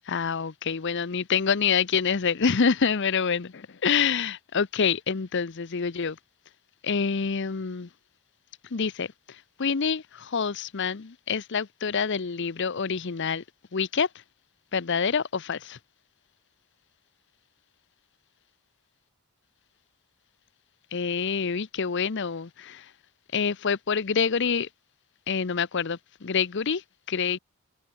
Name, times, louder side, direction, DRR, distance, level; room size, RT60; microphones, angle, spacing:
voice 1, 0.1-6.2 6.8-7.9 8.7-13.4 13.7-14.1 14.7-15.8 20.9-22.9 23.3-24.7 25.3-27.4, left 6 dB, 55° left, 0.7 m, -27 dB
head